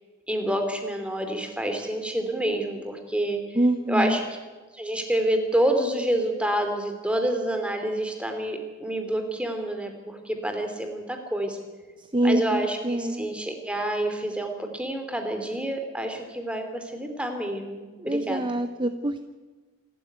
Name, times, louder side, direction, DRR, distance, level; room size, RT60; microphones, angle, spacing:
voice 1, 0.3-3.6 3.9-4.2 4.7-11.6 12.2-18.4, right 1 dB, 5° right, 5 dB, 2.9 m, -28 dB
voice 2, 3.6-4.2 12.1-13.2 18.0-19.2, right 1 dB, 25° right, 10 dB, 0.7 m, -25 dB
26.5 x 13.0 x 9.4 m, 1.3 s
head